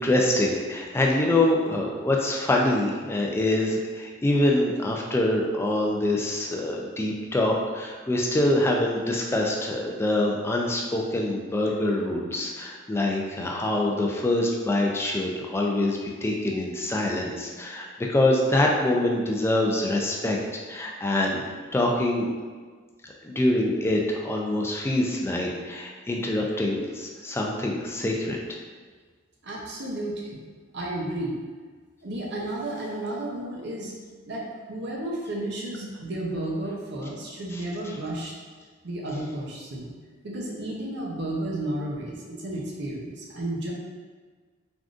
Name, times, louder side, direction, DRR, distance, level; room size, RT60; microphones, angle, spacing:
voice 1, 0.0-20.4 20.7-21.4 21.7-22.3 23.2-28.4 37.5-37.6, left 1 dB, 15° left, -1 dB, 0.3 m, -25 dB
voice 2, 29.4-30.4 30.7-31.4 32.0-33.9 34.3-38.3 38.8-39.9 40.2-43.7, right 1 dB, 60° right, -3 dB, 0.6 m, -32 dB
3.5 x 2.5 x 2.4 m, 1.5 s
head